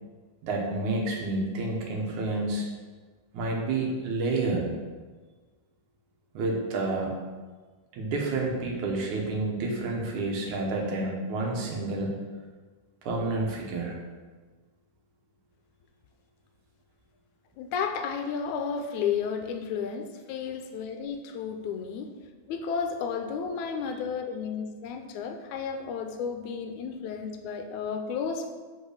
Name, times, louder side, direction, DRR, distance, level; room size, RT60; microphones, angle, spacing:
voice 1, 0.4-2.7 3.3-4.7 6.3-7.2 7.9-12.1 13.0-14.0, right 2 dB, 80° right, 0 dB, 2.7 m, -29 dB
voice 2, 17.6-22.1 22.5-28.5, left 6 dB, 90° left, 6 dB, 2.1 m, -32 dB
5.6 x 5.5 x 6.3 m, 1.4 s
omnidirectional pair, 3.3 m